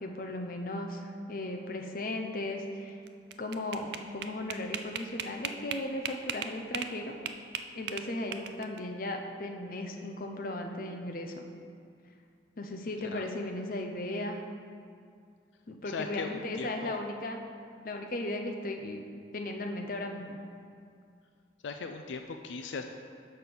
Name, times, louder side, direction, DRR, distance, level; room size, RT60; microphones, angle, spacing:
voice 1, 0.0-3.0 3.4-7.1 7.7-11.4 12.6-14.4 15.7-17.4 17.8-19.0 19.3-20.4, left 1 dB, 50° left, 3 dB, 0.7 m, -36 dB
sound 1, 3.1-6.9 7.3-8.8, right 7 dB, 65° right, 0.4 m, -37 dB
voice 2, 15.8-17.0 21.6-22.8, left 4 dB, 85° left, 6 dB, 0.4 m, -38 dB
6.9 x 5.4 x 6.0 m, 2.3 s
head